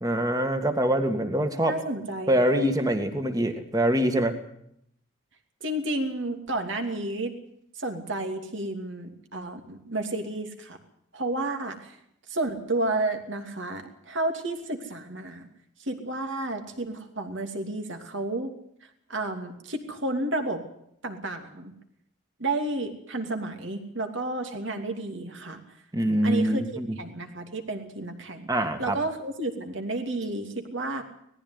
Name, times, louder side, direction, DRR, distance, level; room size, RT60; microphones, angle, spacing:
voice 1, 0.0-1.8 2.3-4.4 25.9-26.9 28.5-29.0, right 1 dB, 15° right, 7 dB, 1.9 m, -24 dB
voice 2, 1.7-2.4 5.6-7.3 7.7-10.8 11.1-12.0 12.3-15.5 15.8-18.5 19.1-20.6 21.0-21.7 22.4-25.6 26.2-26.6 27.0-28.5 28.8-31.0, right 2 dB, 65° right, 5 dB, 2.8 m, -31 dB
18.5 x 15.0 x 9.6 m, 0.72 s
head